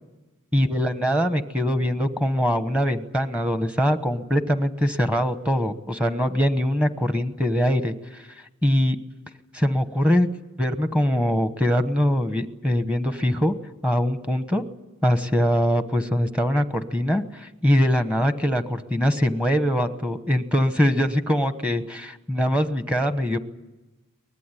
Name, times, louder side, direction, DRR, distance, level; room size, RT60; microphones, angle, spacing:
voice 1, 0.5-8.2 8.6-9.0 9.5-10.3 10.6-13.5 13.8-14.6 15.0-23.4, equal, 5° right, 9 dB, 1.1 m, -22 dB
23.5 x 20.0 x 9.9 m, 1.1 s
head